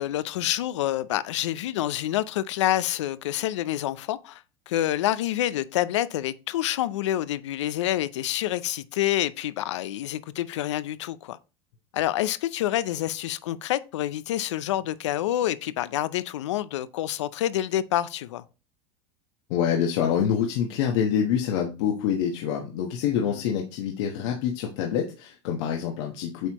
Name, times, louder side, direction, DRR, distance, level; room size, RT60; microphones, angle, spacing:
voice 1, 0.0-11.4 11.9-18.4 23.3-23.4, left 13 dB, 90° left, 0.5 m, -27 dB
voice 2, 19.5-26.5, left 8 dB, 70° left, 1.2 m, -26 dB
8.1 x 4.5 x 2.9 m
supercardioid pair, 120°, 15 cm